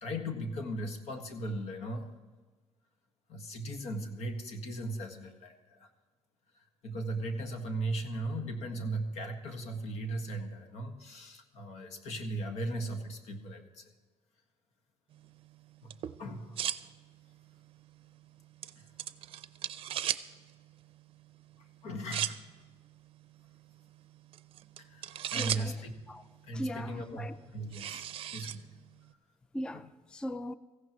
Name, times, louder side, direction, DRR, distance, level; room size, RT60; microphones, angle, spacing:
voice 1, 0.0-2.1 3.3-5.9 6.6-13.9 15.8-15.9 16.2-16.6 18.8-18.9 21.6-22.4 24.8-25.9 26.4-28.8 29.7-29.8, right 1 dB, 80° left, 1.7 m, -38 dB
sound 1, 15.1-29.1, right 11 dB, 55° right, 0.5 m, -41 dB
voice 2, 25.3-26.2 26.5-27.4 29.5-30.5, left 1 dB, 10° left, 0.3 m, -39 dB
17.0 x 15.0 x 3.0 m
cardioid pair, 145°, 11 cm